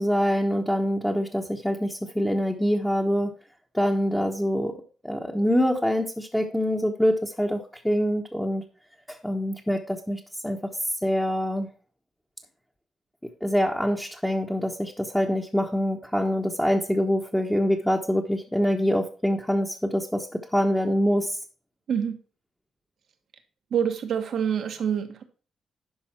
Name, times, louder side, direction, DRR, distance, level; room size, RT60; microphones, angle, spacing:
voice 1, 0.0-3.3 3.7-4.7 5.0-8.6 9.1-10.6 11.0-11.7 13.4-21.4, equal, 5° left, -1 dB, 1.2 m, -25 dB
voice 2, 23.7-25.2, right 8 dB, 65° right, 7 dB, 1.4 m, -26 dB
11.5 x 4.9 x 4.4 m, 0.38 s
cardioid pair, 85°, 0 cm